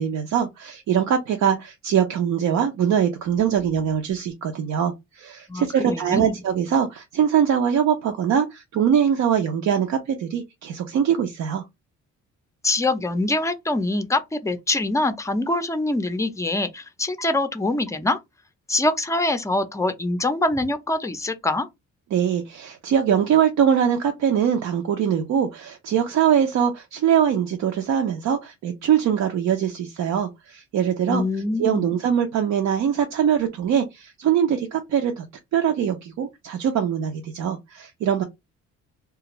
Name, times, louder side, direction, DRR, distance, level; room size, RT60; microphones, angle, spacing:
voice 1, 0.0-11.6 22.1-31.2 31.6-35.3 35.5-38.2, right 8 dB, 65° right, 0.6 m, -22 dB
voice 2, 5.5-6.3 12.6-18.2 18.7-21.7 31.1-31.9, left 2 dB, 10° left, 0.5 m, -24 dB
2.4 x 2.3 x 3.0 m
cardioid pair, 90°, 30 cm